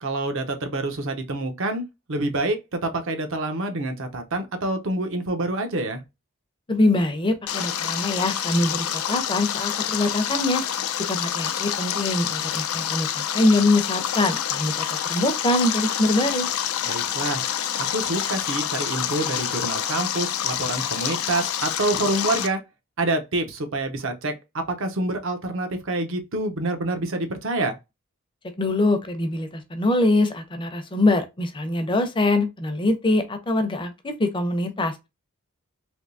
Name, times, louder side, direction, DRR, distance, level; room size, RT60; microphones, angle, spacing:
voice 1, 0.0-6.0 16.9-17.5 17.8-22.6 23.0-24.4 24.7-27.7, right 2 dB, 65° right, 0.8 m, -27 dB
voice 2, 6.7-10.6 11.1-16.5 28.6-34.9, left 2 dB, 25° left, 0.6 m, -23 dB
Stream, 7.5-22.5, left 9 dB, 80° left, 0.5 m, -27 dB
3.5 x 2.7 x 2.6 m
head